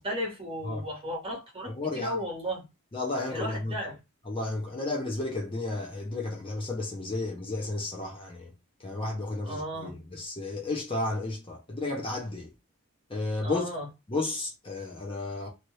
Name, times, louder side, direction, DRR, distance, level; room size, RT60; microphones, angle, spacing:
voice 1, 0.0-2.6 3.3-4.0 9.4-9.9 13.4-13.9, equal, 25° right, 1.3 m, -34 dB
voice 2, 1.7-2.2 2.9-3.7 4.3-8.5 8.8-12.5 13.1-13.6 14.1-15.5, left 2 dB, 25° left, 0.7 m, -32 dB
2.8 x 2.5 x 3.0 m
head